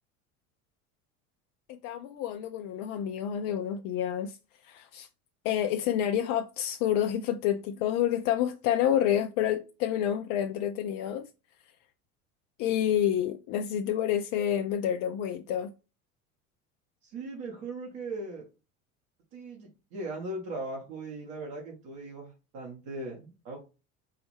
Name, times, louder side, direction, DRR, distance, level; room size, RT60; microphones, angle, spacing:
voice 1, 1.8-4.3 4.7-5.1 5.4-11.3 12.6-15.7, left 10 dB, 45° left, 0.5 m, -28 dB
voice 2, 17.0-18.5 19.3-23.6, right 2 dB, 55° right, 1.6 m, -39 dB
4.6 x 3.0 x 3.2 m
figure-of-eight pair, 70°, 43 cm